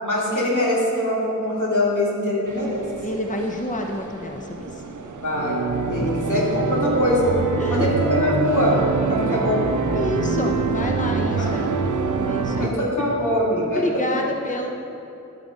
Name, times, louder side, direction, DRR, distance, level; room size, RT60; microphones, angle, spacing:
voice 1, 0.0-2.8 5.2-7.3 7.7-8.8 9.1-9.7 11.3-11.5 12.6-13.8, left 1 dB, 85° left, -6 dB, 2.6 m, -23 dB
sound 1, 2.5-12.7, right 4 dB, 85° right, 0.6 m, -25 dB
voice 2, 3.0-4.8 6.0-6.1 7.5-7.9 9.2-9.4 9.9-11.7 12.2-12.7 13.6-14.7, left 1 dB, 25° left, 2 dB, 0.9 m, -28 dB
12.0 x 9.1 x 3.8 m, 2.9 s
wide cardioid pair, 50°, 30 cm